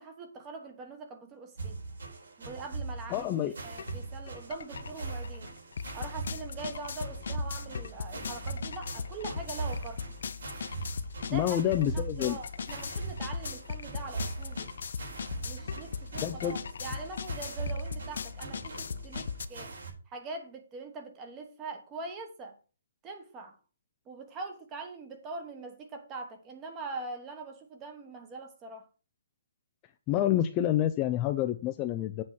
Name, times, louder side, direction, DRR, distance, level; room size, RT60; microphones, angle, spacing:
voice 1, 0.0-1.8 2.4-5.5 5.9-10.2 11.2-11.6 11.9-14.7 15.4-19.7 20.1-22.6 23.0-23.6 24.1-28.9, right 3 dB, 15° right, 1.2 m, -43 dB
sound 1, 1.6-19.9, right 3 dB, 75° right, 4.1 m, -41 dB
voice 2, 3.1-3.5 11.3-12.4 16.2-16.6 30.1-32.2, left 12 dB, 20° left, 0.4 m, -28 dB
sound 2, 3.8-3.9 4.3-19.4, left 6 dB, 60° left, 0.7 m, -39 dB
8.2 x 4.2 x 6.0 m
hypercardioid pair, 165°, 0 cm